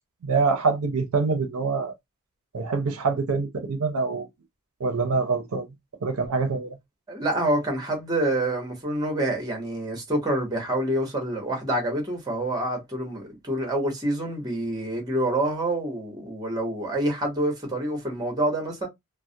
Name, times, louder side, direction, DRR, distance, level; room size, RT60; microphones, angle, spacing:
voice 1, 0.2-1.9 2.5-4.3 4.8-5.7 6.0-6.8, right 4 dB, 70° right, 0.5 m, -25 dB
voice 2, 7.1-18.9, right 1 dB, 20° right, 0.9 m, -27 dB
2.3 x 2.0 x 2.6 m
head